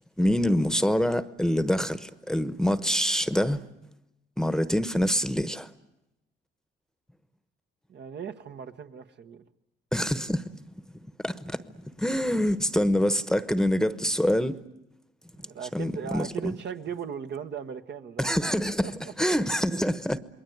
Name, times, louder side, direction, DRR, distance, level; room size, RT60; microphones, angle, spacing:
voice 1, 0.2-3.6 4.4-5.7 9.9-10.4 11.2-11.6 12.0-14.6 15.7-16.5 18.2-20.2, equal, 5° left, 1.1 m, -25 dB
voice 2, 7.9-9.5 15.4-18.3 18.8-19.1 19.7-19.8, right 7 dB, 60° right, 1.5 m, -38 dB
28.0 x 21.5 x 9.4 m
cardioid pair, 90°, 20 cm